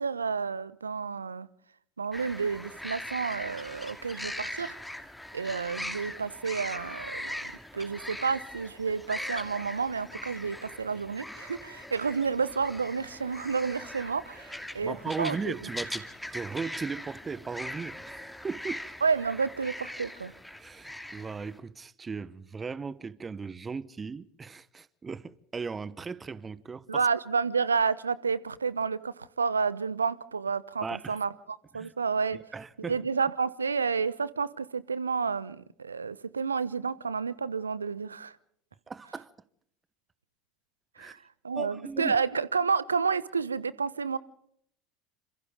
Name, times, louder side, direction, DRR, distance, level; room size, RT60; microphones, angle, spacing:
voice 1, 0.0-1.5 2.0-4.8 5.3-15.6 19.0-20.3 26.9-32.4 32.8-38.4 41.0-41.2 41.4-44.2, right 5 dB, 85° right, 0.9 m, -30 dB
sound 1, 2.1-21.6, left 1 dB, 5° left, 2.4 m, -41 dB
voice 2, 14.8-16.1 16.3-18.8 20.6-27.0 30.8-31.2 31.7-31.9 32.5-33.0 38.9-39.3 41.0-41.2 41.5-42.2, right 5 dB, 25° right, 1.0 m, -37 dB
28.0 x 27.0 x 3.7 m
figure-of-eight pair, 70°, 0 cm